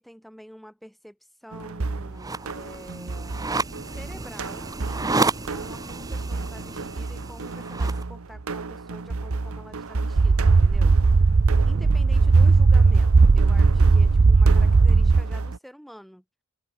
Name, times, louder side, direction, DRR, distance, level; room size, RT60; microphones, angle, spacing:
voice 1, 0.0-3.4 3.6-11.3 11.6-16.2, equal, ahead, 3.5 m, -47 dB
sound 1, 1.5-15.6, right 3 dB, 80° right, 0.9 m, -33 dB
sound 2, 2.2-8.0, right 3 dB, 15° right, 0.9 m, -31 dB
sound 3, 10.2-15.2, right 4 dB, 45° right, 0.4 m, -17 dB
open air
head